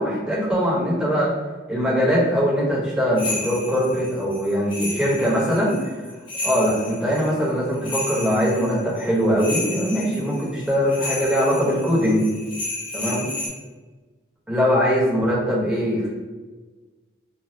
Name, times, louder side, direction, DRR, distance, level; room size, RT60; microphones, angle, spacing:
voice 1, 0.0-1.3 1.7-5.9 6.4-12.3 12.9-13.3 14.5-16.1, equal, 5° right, -7 dB, 0.7 m, -21 dB
sound 1, 3.2-13.5, left 2 dB, 25° left, 0.8 m, -32 dB
3.1 x 2.3 x 2.6 m, 1.3 s
head